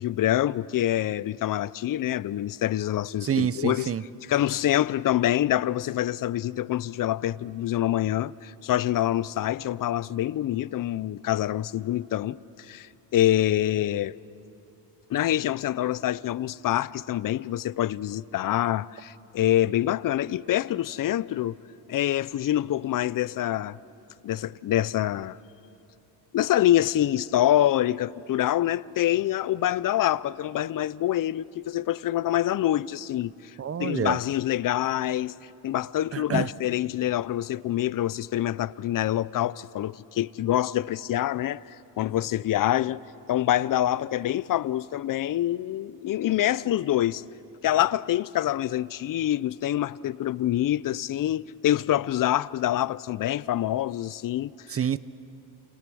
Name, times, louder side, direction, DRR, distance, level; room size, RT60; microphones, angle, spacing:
voice 1, 0.0-3.9 4.2-14.2 15.1-21.6 21.9-23.8 24.2-25.4 26.3-33.5 33.8-35.3 35.6-43.0 43.3-47.2 47.6-54.8, left 13 dB, 50° left, 0.6 m, -26 dB
voice 2, 3.3-4.0 33.6-34.2 36.1-36.5 54.7-55.0, right 8 dB, 35° right, 0.7 m, -27 dB
29.0 x 28.0 x 6.2 m
cardioid pair, 110°, 43 cm